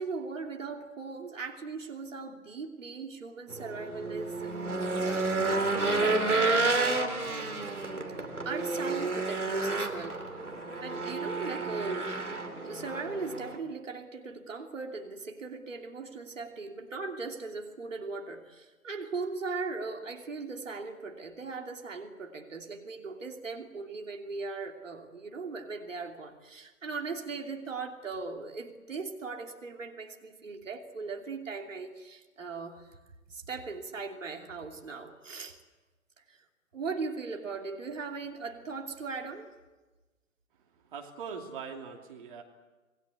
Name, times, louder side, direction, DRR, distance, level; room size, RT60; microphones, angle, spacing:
voice 1, 0.0-4.6 5.0-7.3 8.4-10.2 10.8-12.2 12.6-32.9 33.3-35.6 36.2-36.4 36.7-39.6, right 4 dB, 60° right, 3 dB, 3.0 m, -39 dB
Race car auto racing / Engine, 3.5-13.6, right 3 dB, 80° right, 3.3 m, -30 dB
voice 2, 40.7-42.4, right 6 dB, 35° right, 2 dB, 2.8 m, -42 dB
27.0 x 20.5 x 8.3 m, 1.2 s
figure-of-eight pair, 135°, 43 cm